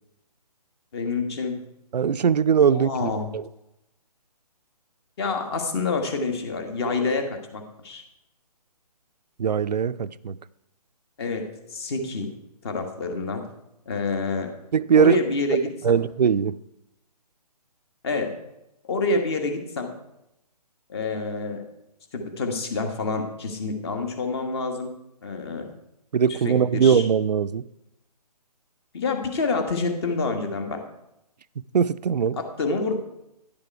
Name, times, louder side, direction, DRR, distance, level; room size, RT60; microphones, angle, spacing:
voice 1, 0.9-1.6 2.7-3.3 5.2-8.0 11.2-11.4 11.7-12.3 12.6-13.4 13.8-14.5 14.9-15.7 18.0-18.3 18.8-19.9 20.9-21.6 22.1-24.9 25.2-25.7 26.4-27.0 28.9-30.8 32.4-32.9, left 3 dB, 40° left, 1.5 m, -27 dB
voice 2, 1.9-3.4 9.4-10.4 14.7-15.2 15.8-16.6 26.1-27.7 31.7-32.4, right 7 dB, 85° right, 0.4 m, -21 dB
10.5 x 7.0 x 4.6 m
figure-of-eight pair, 145°, 21 cm